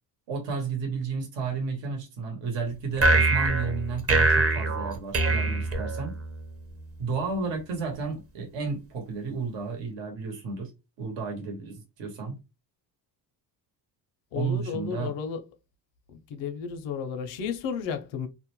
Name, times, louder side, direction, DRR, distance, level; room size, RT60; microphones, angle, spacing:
voice 1, 0.3-6.1 7.0-10.7 11.0-12.4 14.3-15.1, right 4 dB, 80° right, 1.0 m, -32 dB
sound 1, 3.0-6.4, right 2 dB, 30° right, 0.7 m, -23 dB
voice 2, 14.3-15.4 16.1-18.3, left 6 dB, 85° left, 0.7 m, -33 dB
2.4 x 2.1 x 3.0 m
cardioid pair, 105°, 44 cm